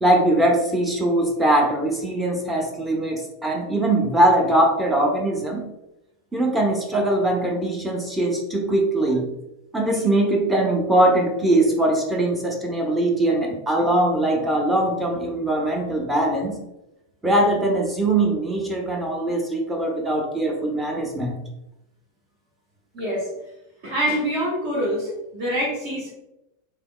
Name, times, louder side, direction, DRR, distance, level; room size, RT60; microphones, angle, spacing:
voice 1, 0.0-5.7 6.3-9.3 9.7-16.6 17.2-21.4, right 1 dB, 10° right, 0 dB, 0.6 m, -21 dB
voice 2, 22.9-23.3 23.8-26.1, equal, 50° right, -6 dB, 1.1 m, -25 dB
3.4 x 2.9 x 2.2 m, 0.89 s
figure-of-eight pair, 85°, 0 cm